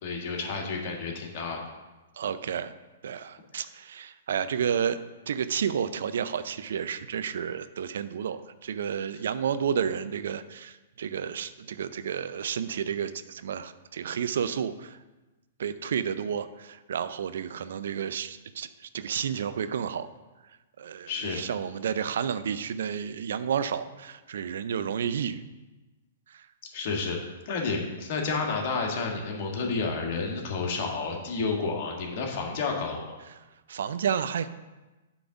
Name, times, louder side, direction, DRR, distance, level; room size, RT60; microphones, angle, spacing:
voice 1, 0.0-1.6 3.5-3.6 21.1-21.4 26.7-27.2 27.4-33.2, left 4 dB, 50° left, 1 dB, 1.6 m, -30 dB
voice 2, 2.2-2.7 3.0-5.0 5.3-15.0 15.6-18.7 18.9-20.1 20.8-25.4 26.3-26.5 33.7-34.5, right 8 dB, 65° right, 13 dB, 0.4 m, -31 dB
8.1 x 3.9 x 5.8 m, 1.1 s
hypercardioid pair, 115°, 0 cm